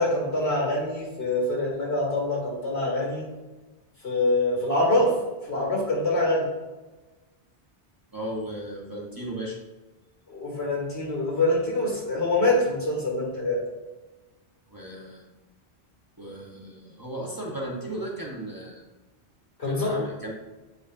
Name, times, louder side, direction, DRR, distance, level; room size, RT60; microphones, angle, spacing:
voice 1, 0.0-3.2 4.0-5.1 5.5-6.5 10.3-13.6 19.6-19.9, left 2 dB, 85° left, -3 dB, 2.3 m, -25 dB
voice 2, 8.1-9.6 14.7-15.2 16.2-18.8 19.7-20.3, right 1 dB, 20° right, -3 dB, 1.0 m, -35 dB
8.4 x 4.8 x 2.6 m, 1.2 s
omnidirectional pair, 1.1 m